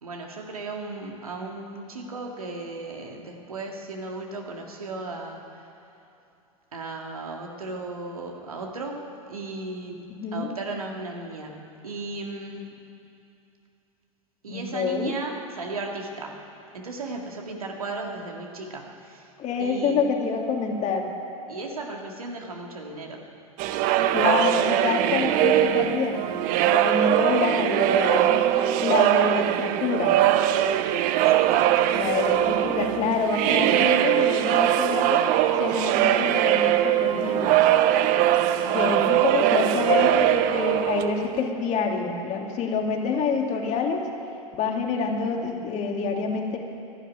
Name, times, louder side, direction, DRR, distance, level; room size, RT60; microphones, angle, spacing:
voice 1, 0.0-5.7 6.7-9.0 9.3-10.0 10.3-12.7 14.4-16.4 16.7-19.3 19.6-20.0 21.5-23.3 27.0-27.1 31.2-31.8, right 3 dB, 85° right, 1 dB, 2.1 m, -36 dB
voice 2, 14.5-15.1 19.4-21.1 24.1-26.3 26.7-28.5 28.8-30.2 31.9-35.2 35.6-37.6 38.6-44.1 44.5-46.6, left 5 dB, 40° left, 1 dB, 2.4 m, -27 dB
sound 1, 23.6-41.5, right 12 dB, 50° right, 0.8 m, -21 dB
12.0 x 12.0 x 9.6 m, 2.7 s
hypercardioid pair, 85°, 18 cm